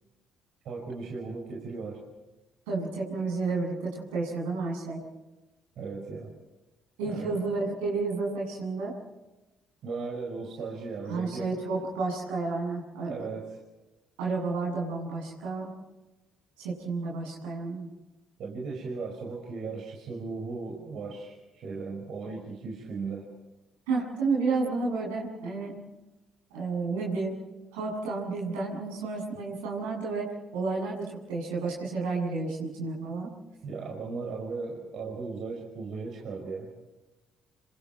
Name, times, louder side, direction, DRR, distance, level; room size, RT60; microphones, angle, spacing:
voice 1, 0.6-2.0 5.8-6.3 7.0-7.4 9.8-11.5 13.1-13.6 18.4-23.3 33.6-36.7, right 4 dB, 65° right, 0 dB, 5.5 m, -37 dB
voice 2, 2.7-5.0 7.0-8.9 11.1-13.3 14.2-15.7 16.6-17.9 23.9-25.7 26.5-27.4 27.7-33.3, right 3 dB, 85° right, -2 dB, 7.8 m, -31 dB
28.0 x 26.5 x 4.5 m, 1.1 s
hypercardioid pair, 50°, 0 cm